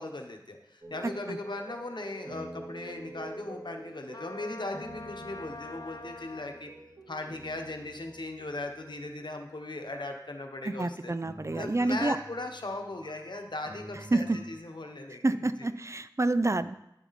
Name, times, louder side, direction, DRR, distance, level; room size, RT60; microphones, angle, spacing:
voice 1, 0.0-6.7 7.1-11.1 11.5-15.7, left 2 dB, 85° left, 4 dB, 1.1 m, -38 dB
sound 1, 0.8-10.1 11.2-14.6, right 1 dB, 90° right, 3.0 m, -47 dB
Trumpet, 4.1-6.6, left 3 dB, 60° left, 0.4 m, -44 dB
voice 2, 10.6-12.2 14.1-14.4 15.2-16.7, right 2 dB, 40° right, 13 dB, 0.4 m, -28 dB
10.5 x 7.2 x 4.1 m, 0.84 s
wide cardioid pair, 45°, 8 cm